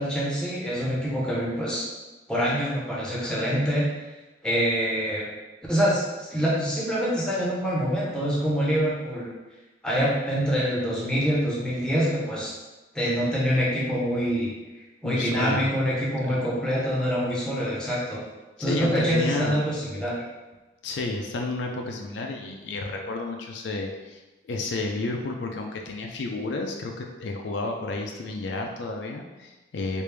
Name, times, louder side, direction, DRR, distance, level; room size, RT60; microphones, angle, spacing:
voice 1, 0.0-1.9 2.3-3.9 4.4-5.3 5.7-9.3 9.8-12.6 12.9-14.5 15.0-18.2 18.6-20.2, equal, 5° left, -6 dB, 0.7 m, -25 dB
voice 2, 15.0-15.9 16.2-16.4 18.6-19.6 20.8-30.0, left 3 dB, 70° left, 2 dB, 0.4 m, -31 dB
3.2 x 2.5 x 3.2 m, 1.1 s
head